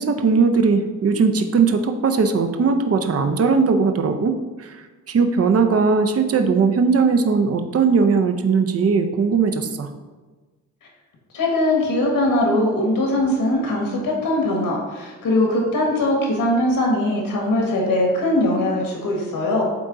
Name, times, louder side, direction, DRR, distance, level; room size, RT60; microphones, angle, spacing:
voice 1, 0.0-4.3 4.6-9.9, right 5 dB, 45° right, 6 dB, 0.7 m, -19 dB
voice 2, 11.3-19.6, left 1 dB, 90° left, -1 dB, 1.5 m, -21 dB
8.5 x 3.8 x 3.8 m, 1.3 s
wide cardioid pair, 110°, 32 cm